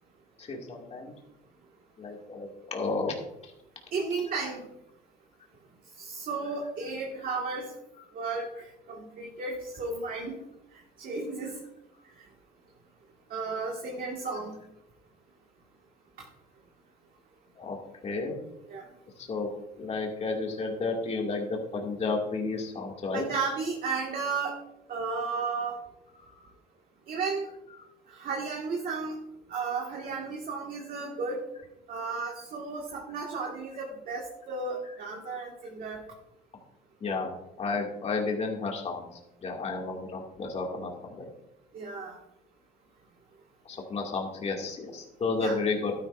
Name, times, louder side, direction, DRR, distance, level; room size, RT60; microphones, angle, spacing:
voice 1, 0.4-1.1 2.0-3.1 17.6-17.8 18.0-18.4 19.2-19.5 19.8-23.3 26.2-26.3 35.1-35.3 37.0-39.0 39.4-41.3 43.7-45.9, left 3 dB, 40° left, 0 dB, 2.4 m, -32 dB
voice 2, 3.9-4.6 6.0-7.7 8.1-10.4 11.0-11.6 13.3-14.6 18.7-18.9 23.1-24.6 24.9-25.8 27.1-27.5 28.1-29.1 29.5-31.4 31.9-36.0 41.7-42.2 45.4-45.6, right 4 dB, 55° right, -1 dB, 2.0 m, -33 dB
12.5 x 10.5 x 2.6 m, 0.85 s
cardioid pair, 110°, 17 cm